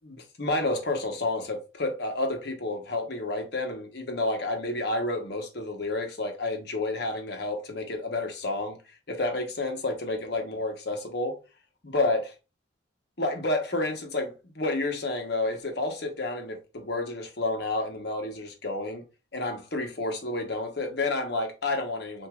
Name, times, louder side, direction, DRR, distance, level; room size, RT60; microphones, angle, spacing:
voice 1, 0.0-8.8 9.1-11.4 11.8-12.3 13.2-19.0 19.3-22.3, left 2 dB, 60° left, 1.1 m, -30 dB
6.3 x 2.6 x 2.3 m
head